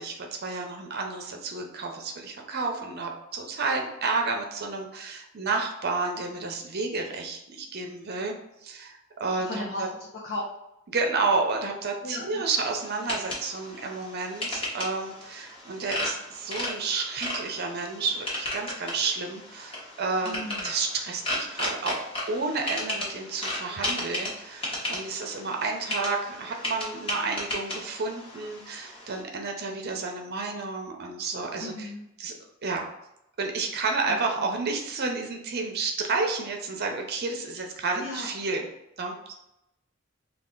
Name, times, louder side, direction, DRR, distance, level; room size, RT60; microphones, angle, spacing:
voice 1, 0.0-8.4 8.6-9.9 10.9-31.9 32.2-32.3 32.6-32.9 33.4-38.7 39.0-39.3, right 4 dB, 50° right, 3 dB, 0.6 m, -31 dB
voice 2, 9.4-10.5 12.0-12.5 20.2-20.7 31.6-32.1 34.1-34.2 38.0-38.3, left 1 dB, 50° left, -3 dB, 0.6 m, -36 dB
sound 1, 12.5-29.2, left 1 dB, 30° left, 1.0 m, -35 dB
3.3 x 2.4 x 3.7 m, 0.85 s
head